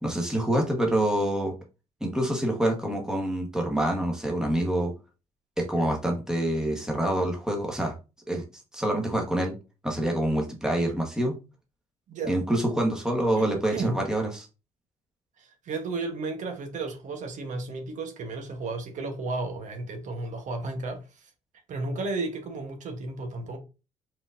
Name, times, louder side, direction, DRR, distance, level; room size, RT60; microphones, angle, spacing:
voice 1, 0.0-1.5 2.0-4.9 5.6-8.0 8.3-8.4 8.7-9.5 9.8-11.4 12.3-14.5, right 1 dB, 5° right, 1.2 m, -26 dB
voice 2, 12.1-12.4 13.4-14.0 15.4-21.3 21.7-23.6, right 3 dB, 65° right, 1.1 m, -33 dB
4.7 x 3.8 x 2.6 m
cardioid pair, 115°, 14 cm